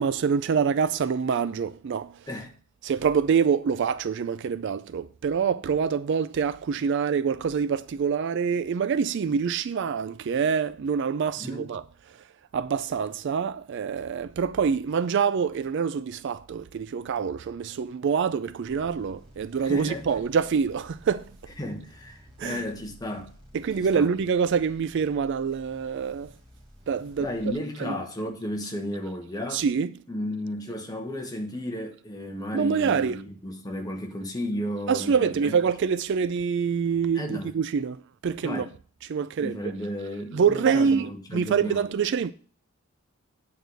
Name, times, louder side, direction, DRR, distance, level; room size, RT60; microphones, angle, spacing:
voice 1, 0.0-2.1 2.8-11.8 12.5-21.2 22.4-22.6 23.5-26.3 26.9-27.3 27.8-27.9 29.5-29.9 32.5-33.2 34.9-38.7 39.1-39.6 40.3-42.3, right 6 dB, 55° right, 0.3 m, -26 dB
voice 2, 11.3-11.7 19.6-20.2 21.6-23.3 23.7-24.1 27.2-29.6 30.1-35.6 37.1-37.5 38.4-38.7 39.4-41.8, left 1 dB, 15° left, 1.2 m, -34 dB
sound 1, 18.7-27.5, equal, 25° right, 2.5 m, -52 dB
9.0 x 4.7 x 6.5 m
head